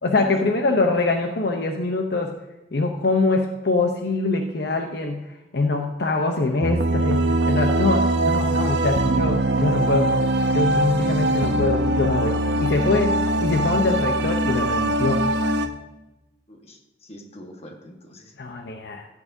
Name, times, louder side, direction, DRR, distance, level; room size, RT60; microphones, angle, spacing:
voice 1, 0.0-2.3 2.7-5.3 5.5-10.1 10.5-15.3 18.4-19.1, left 3 dB, 60° left, 3 dB, 0.8 m, -23 dB
sound 1, 6.6-15.7, right 1 dB, 70° right, 0.7 m, -22 dB
voice 2, 16.5-18.3, equal, 35° left, 2 dB, 1.4 m, -42 dB
14.5 x 8.4 x 2.7 m, 0.98 s
head